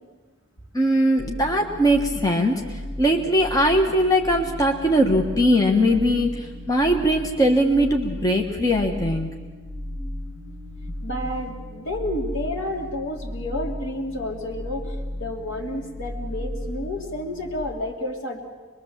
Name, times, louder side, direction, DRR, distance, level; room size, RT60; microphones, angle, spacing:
voice 1, 0.7-2.6 3.0-9.3, equal, 20° left, 1 dB, 1.3 m, -20 dB
sound 1, 1.2-17.6, left 1 dB, 5° right, 5.1 m, -35 dB
voice 2, 11.0-18.4, left 1 dB, 70° left, 0 dB, 3.5 m, -30 dB
24.0 x 22.0 x 7.5 m, 1.3 s
head